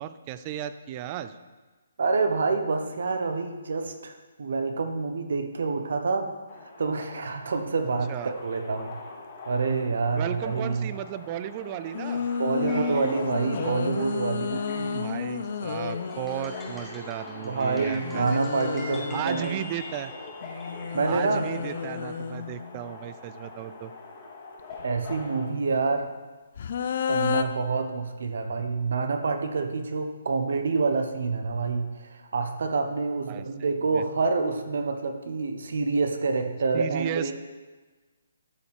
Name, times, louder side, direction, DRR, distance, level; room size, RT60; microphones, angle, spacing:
voice 1, 0.0-1.4 8.1-8.3 10.2-12.3 12.6-13.1 13.6-13.8 15.0-18.4 18.9-20.1 21.1-23.9 33.3-33.5 33.9-34.0 36.7-37.3, right 11 dB, 30° right, 12 dB, 0.5 m, -35 dB
voice 2, 2.0-6.3 6.8-9.0 9.5-10.9 12.4-15.1 17.4-19.6 20.9-21.5 24.8-26.1 27.1-37.3, right 4 dB, 70° right, 6 dB, 1.1 m, -27 dB
Subway metro underground, 6.5-25.4, left 3 dB, 30° left, 2.1 m, -43 dB
sound 1, 11.9-16.8 17.7-19.3 20.4-23.0 24.6-25.2 26.6-27.4, left 6 dB, 55° left, 0.6 m, -31 dB
sound 2, 16.1-20.9, left 2 dB, 10° left, 1.1 m, -45 dB
12.5 x 7.0 x 3.6 m, 1.3 s
hypercardioid pair, 150°, 0 cm